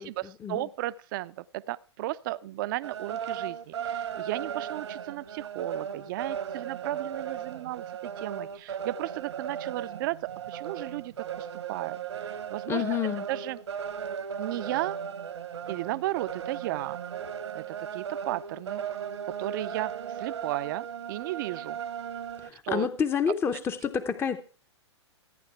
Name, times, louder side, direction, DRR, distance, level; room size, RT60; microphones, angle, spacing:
voice 1, 0.0-13.0 13.3-13.6 14.4-15.0 15.7-17.0 17.5-18.8 19.4-19.9 20.2-21.8 22.6-22.9, right 16 dB, 45° right, 16 dB, 0.5 m, -35 dB
sound 1, 2.8-22.5, right 8 dB, 75° right, 1.1 m, -36 dB
voice 2, 12.7-13.3 22.4-24.4, left 7 dB, 15° left, 11 dB, 0.7 m, -28 dB
14.5 x 9.6 x 4.6 m, 0.39 s
figure-of-eight pair, 110°, 15 cm